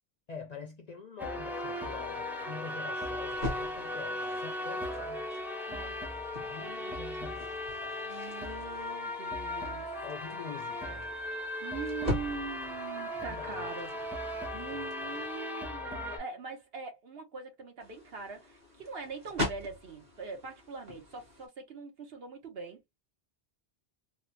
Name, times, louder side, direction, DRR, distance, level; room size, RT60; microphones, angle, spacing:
voice 1, 0.3-5.3 6.5-7.5 10.0-11.1 13.3-13.7 14.5-14.9, left 5 dB, 55° left, 0.5 m, -45 dB
sound 1, 1.2-16.2, left 1 dB, ahead, 0.5 m, -37 dB
sound 2, 3.3-15.4 17.8-21.5, left 1 dB, 40° right, 1.6 m, -42 dB
voice 2, 5.7-6.0 8.0-9.9 11.6-22.8, right 5 dB, 65° right, 1.2 m, -42 dB
3.5 x 2.1 x 2.7 m
omnidirectional pair, 1.1 m